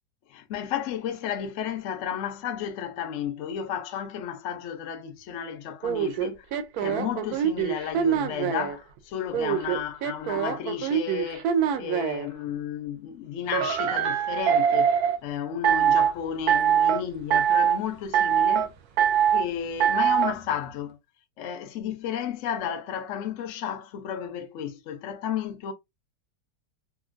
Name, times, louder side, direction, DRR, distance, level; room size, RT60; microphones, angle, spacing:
voice 1, 0.3-6.5 6.8-11.5 11.8-18.7 19.3-21.0 21.4-25.7, left 9 dB, 70° left, 0.7 m, -33 dB
sound 1, 5.8-8.8 9.3-12.3 13.5-15.2 15.6-16.1 16.5-17.0 17.3-17.8 18.1-18.7 19.0-19.4 19.8-20.3, right 8 dB, 70° right, 1.0 m, -23 dB
2.9 x 2.5 x 2.5 m
omnidirectional pair, 1.8 m